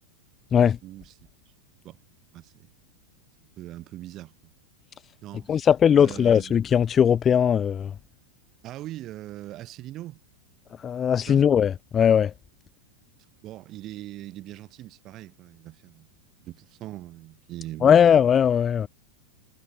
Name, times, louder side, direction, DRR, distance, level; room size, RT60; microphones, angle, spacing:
voice 1, 0.8-1.1 1.8-2.0 2.3-2.7 3.4-4.5 5.2-5.7 6.0-6.6 8.6-10.2 11.3-11.5 13.4-16.1 16.4-18.0, right 15 dB, 35° right, 3.1 m, -41 dB
voice 2, 5.5-7.9 10.8-12.3 17.8-18.9, left 8 dB, 25° left, 0.4 m, -19 dB
figure-of-eight pair, 90°, 0 cm